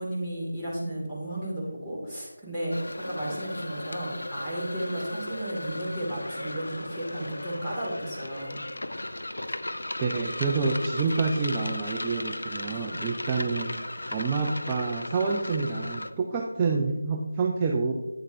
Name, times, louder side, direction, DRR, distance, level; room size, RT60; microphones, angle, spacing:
voice 1, 0.0-2.8 3.0-8.6, right 1 dB, 5° left, -11 dB, 2.3 m, -33 dB
sound 1, 2.7-16.1, left 1 dB, 80° left, 0.5 m, -36 dB
voice 2, 10.0-13.8 14.1-17.9, right 4 dB, 15° right, 0 dB, 0.5 m, -28 dB
9.0 x 7.7 x 2.7 m, 1.1 s
figure-of-eight pair, 165°, 0 cm